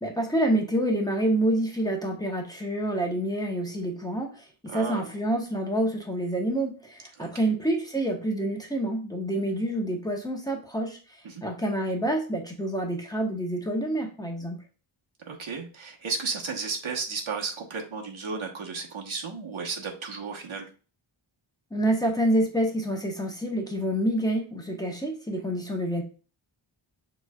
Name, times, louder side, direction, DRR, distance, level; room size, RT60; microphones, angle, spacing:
voice 1, 0.0-11.0 11.4-14.6 21.7-26.0, right 1 dB, 10° left, 1 dB, 1.1 m, -27 dB
voice 2, 4.7-5.1 7.2-7.3 11.2-11.4 15.2-20.7, right 4 dB, 70° right, 0 dB, 1.3 m, -34 dB
6.9 x 3.2 x 2.4 m, 0.36 s
wide cardioid pair, 95°, 50 cm